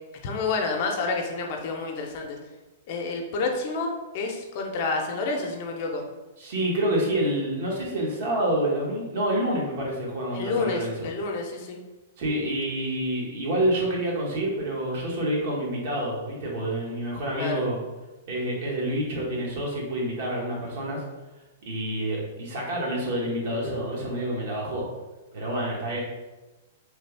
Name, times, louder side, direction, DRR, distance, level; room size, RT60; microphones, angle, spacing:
voice 1, 0.2-2.4 2.9-6.0 10.3-11.8 17.4-17.6, left 3 dB, 50° left, 2 dB, 0.6 m, -29 dB
voice 2, 6.4-10.9 12.2-17.8 18.3-21.0 21.7-24.9 25.3-26.0, right 1 dB, 60° right, -3 dB, 1.2 m, -28 dB
3.2 x 2.3 x 3.3 m, 1.1 s
hypercardioid pair, 135°, 0 cm